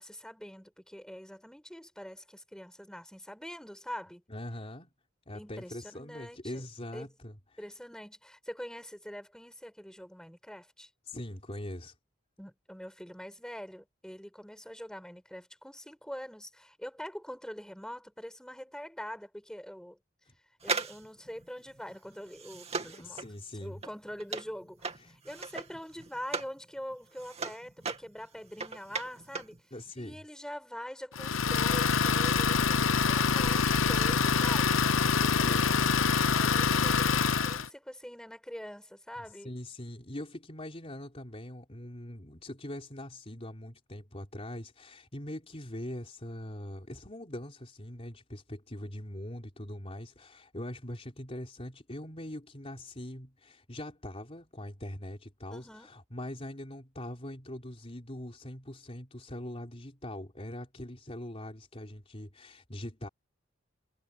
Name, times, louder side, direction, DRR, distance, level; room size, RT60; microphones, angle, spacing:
voice 1, 0.0-4.2 5.3-6.6 6.9-7.1 7.6-10.9 12.4-20.0 20.6-23.2 23.6-29.6 30.0-34.9 35.4-35.6 36.3-39.5 55.5-55.9, equal, 5° left, 7.5 m, -44 dB
voice 2, 4.3-4.9 5.3-7.4 11.1-11.9 20.3-20.4 22.8-23.8 25.0-25.2 29.7-30.2 35.0-35.8 39.4-63.1, left 1 dB, 30° left, 3.9 m, -42 dB
sound 1, 20.6-26.6 26.9-29.6 29.9-30.0, right 4 dB, 35° right, 2.7 m, -38 dB
Idling, 31.2-37.7, left 5 dB, 80° left, 0.9 m, -26 dB
head